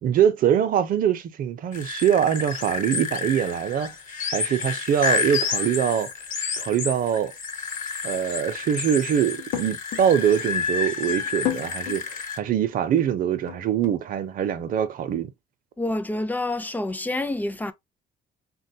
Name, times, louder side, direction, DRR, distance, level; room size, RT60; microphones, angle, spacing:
voice 1, 0.0-3.9 4.3-6.1 6.6-7.3 8.0-12.0 12.4-15.3, right 9 dB, 55° right, 0.6 m, -23 dB
sound 1, 1.7-12.4, left 5 dB, 50° left, 1.0 m, -30 dB
sound 2, 9.3-10.1 10.5-10.6 10.9-12.0 12.4-12.5 13.0-14.0, left 12 dB, 90° left, 0.7 m, -32 dB
voice 2, 15.8-17.7, left 2 dB, 10° left, 0.4 m, -27 dB
3.7 x 2.3 x 2.7 m
cardioid pair, 110°, 17 cm